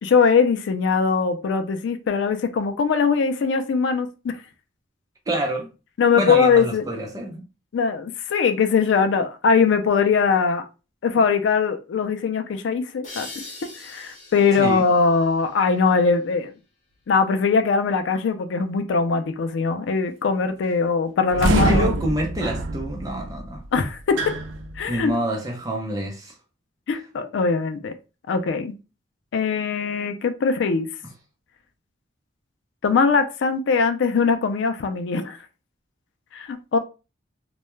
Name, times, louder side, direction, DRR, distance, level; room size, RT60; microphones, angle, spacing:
voice 1, 0.0-4.4 6.0-6.8 7.7-10.6 11.0-13.3 13.8-16.5 17.1-21.9 23.7-24.2 24.8-25.1 26.9-27.9 28.3-28.7 29.3-30.9 32.8-35.4 36.3-36.8, left 5 dB, 75° left, 0.4 m, -21 dB
voice 2, 5.3-5.7 6.1-7.4 14.5-14.9 21.5-23.6 24.9-26.3, equal, 20° right, 0.5 m, -27 dB
sound 1, 13.0-16.4, left 2 dB, 40° left, 0.7 m, -42 dB
sound 2, 21.3-25.2, right 3 dB, 80° right, 0.4 m, -26 dB
2.2 x 2.0 x 3.0 m
head